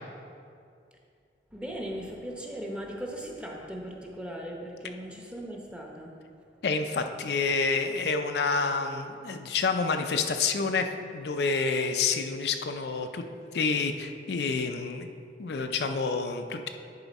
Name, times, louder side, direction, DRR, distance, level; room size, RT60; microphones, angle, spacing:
voice 1, 1.5-6.1, equal, 5° right, -1 dB, 0.8 m, -38 dB
voice 2, 6.6-13.2 13.5-15.1 15.4-16.7, left 4 dB, 65° left, 6 dB, 0.5 m, -28 dB
10.5 x 5.0 x 4.1 m, 2.4 s
head